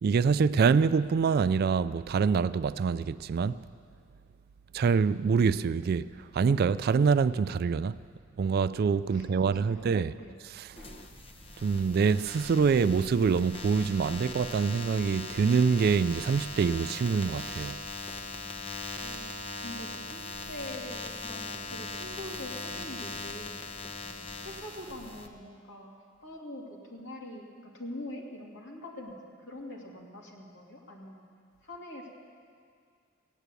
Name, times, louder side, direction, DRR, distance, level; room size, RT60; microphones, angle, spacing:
voice 1, 0.0-3.6 4.7-6.1 6.3-8.0 8.4-10.1 11.6-17.8, right 5 dB, 50° right, 0.3 m, -25 dB
voice 2, 9.1-10.3 19.0-23.5 24.4-25.9 26.2-31.3 31.6-32.1, left 1 dB, 65° left, 2.5 m, -44 dB
sound 1, 10.8-25.3, left 2 dB, 30° left, 0.9 m, -40 dB
16.5 x 9.0 x 8.3 m
head